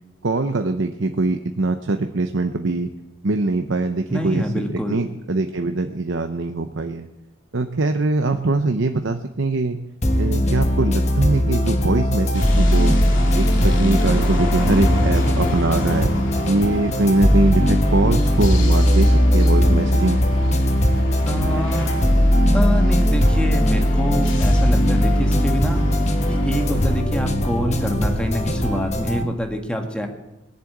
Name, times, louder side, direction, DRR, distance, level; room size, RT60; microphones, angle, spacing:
voice 1, 0.2-2.9 3.2-4.4 4.9-7.1 7.5-9.8 10.2-13.0 13.3-16.1 16.4-20.2, right 2 dB, 75° right, 6 dB, 0.8 m, -22 dB
voice 2, 4.1-5.0 21.3-22.2 22.5-25.8 26.3-30.1, equal, 5° left, 3 dB, 1.7 m, -26 dB
sound 1, 10.0-29.2, equal, 35° left, 1.3 m, -19 dB
sound 2, 12.3-27.0, left 1 dB, 75° left, 3.0 m, -31 dB
21.5 x 7.6 x 8.7 m, 0.98 s
head